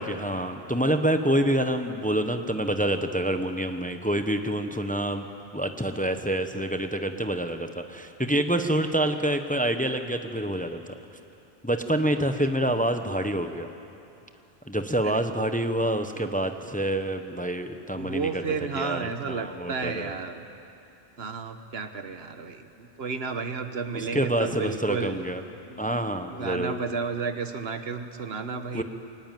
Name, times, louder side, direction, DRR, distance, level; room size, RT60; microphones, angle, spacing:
voice 1, 0.0-5.3 5.5-10.8 11.6-13.7 14.7-20.2 23.9-25.4 25.8-26.7 28.7-28.8, right 1 dB, 10° left, 7 dB, 0.8 m, -27 dB
voice 2, 17.9-20.4 21.2-25.2 25.7-26.0 26.3-28.8, right 5 dB, 80° right, 8 dB, 1.4 m, -32 dB
23.0 x 19.0 x 9.1 m, 2.7 s
omnidirectional pair, 1.0 m